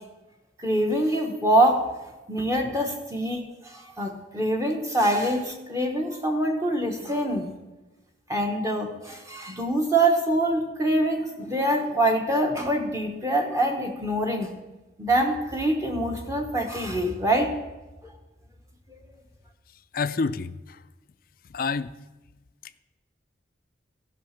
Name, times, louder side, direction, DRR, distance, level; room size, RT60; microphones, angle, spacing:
voice 1, 0.6-1.8 2.3-7.4 8.3-14.5 15.0-17.5 18.0-18.1, right 1 dB, 15° right, 1.1 m, -25 dB
voice 2, 19.9-20.8 21.5-21.9, left 4 dB, 50° left, 0.4 m, -28 dB
14.5 x 5.8 x 5.8 m
head